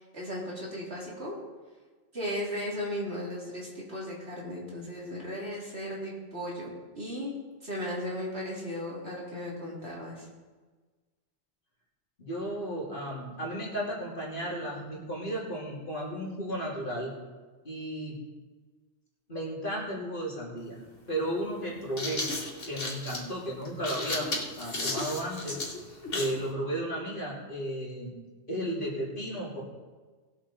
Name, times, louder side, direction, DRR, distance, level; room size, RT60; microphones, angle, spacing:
voice 1, 0.0-1.3 2.1-7.3 7.6-10.3, equal, 60° right, -5 dB, 3.5 m, -36 dB
voice 2, 12.2-17.1 17.6-18.2 19.3-20.8 21.1-22.2 22.7-24.3 24.6-25.6 26.1-28.1 28.5-29.6, right 1 dB, 50° left, -4 dB, 3.1 m, -34 dB
sound 1, 20.6-20.7 21.7-26.4, left 2 dB, 90° left, 3.1 m, -34 dB
20.0 x 7.3 x 4.3 m, 1.4 s
omnidirectional pair, 1.2 m